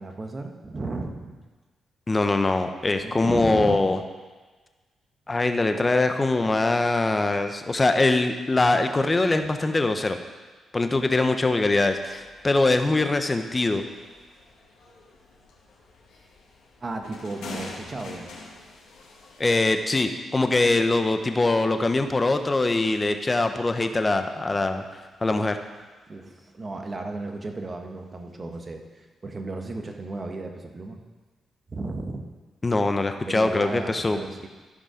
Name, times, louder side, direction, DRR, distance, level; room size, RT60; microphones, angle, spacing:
voice 1, 0.0-1.4 2.9-3.8 10.9-11.1 16.8-18.3 26.1-31.0 31.7-32.3 33.2-34.5, right 2 dB, 40° right, 4 dB, 1.4 m, -34 dB
voice 2, 2.1-4.0 5.3-10.2 10.7-13.9 19.4-24.8 25.2-25.6 32.6-34.2, left 2 dB, 30° left, 7 dB, 1.0 m, -22 dB
sound 1, 11.7-19.8, left 3 dB, 80° left, 2.2 m, -45 dB
14.5 x 5.3 x 5.1 m, 1.3 s
supercardioid pair, 50°, 0 cm